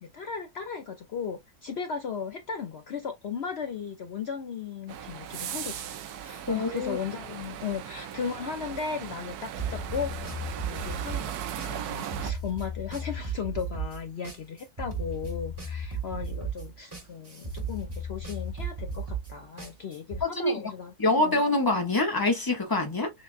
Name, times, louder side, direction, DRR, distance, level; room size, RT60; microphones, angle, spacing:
voice 1, 0.0-5.8 6.2-10.1 10.6-11.4 11.7-21.4, left 6 dB, 60° left, 0.7 m, -36 dB
sound 1, 4.9-12.3, right 9 dB, 80° right, 1.2 m, -38 dB
voice 2, 6.5-7.0 20.2-20.6 21.0-23.1, left 2 dB, 25° left, 0.5 m, -25 dB
sound 2, 9.6-20.2, right 2 dB, 25° right, 0.6 m, -35 dB
6.4 x 2.2 x 2.4 m
omnidirectional pair, 1.6 m